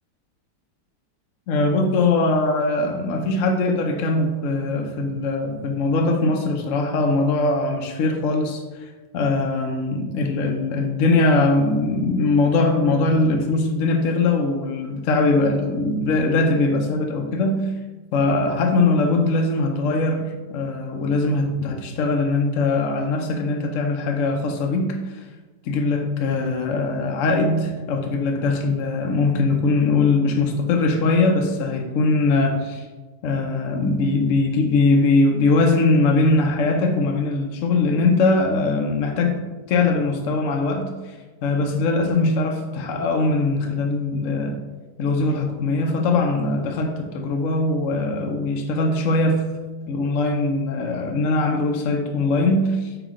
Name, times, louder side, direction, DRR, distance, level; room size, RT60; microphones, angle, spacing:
voice 1, 1.5-17.7 18.1-25.2 25.7-32.8 33.2-40.9 41.4-44.6 45.0-49.5 49.9-52.9, left 3 dB, 60° left, 3 dB, 0.9 m, -21 dB
5.8 x 5.0 x 3.7 m, 1.2 s
omnidirectional pair, 1.8 m